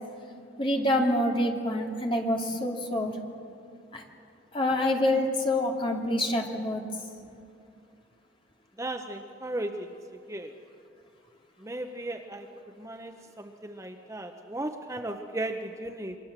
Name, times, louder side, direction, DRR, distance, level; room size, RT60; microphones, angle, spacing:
voice 1, 0.6-3.1 3.9-4.0 4.5-6.8, left 1 dB, 25° left, 1 dB, 2.6 m, -26 dB
voice 2, 8.8-9.9 10.3-10.5 11.6-12.5 12.8-16.2, right 1 dB, 15° right, 5 dB, 0.8 m, -36 dB
28.0 x 23.5 x 7.4 m, 2.5 s
head